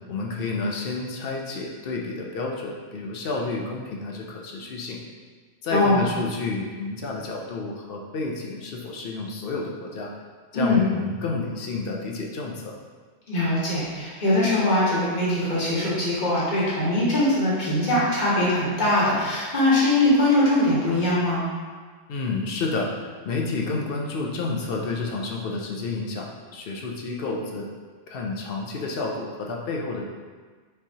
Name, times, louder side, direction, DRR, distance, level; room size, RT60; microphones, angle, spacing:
voice 1, 0.1-5.0 5.6-10.1 10.5-12.7 22.1-27.6 28.1-30.0, left 3 dB, 60° left, 0 dB, 0.7 m, -30 dB
voice 2, 5.7-6.0 10.5-10.8 13.3-21.4, left 1 dB, 40° left, -7 dB, 1.3 m, -21 dB
5.3 x 3.1 x 2.8 m, 1.5 s
omnidirectional pair, 1.3 m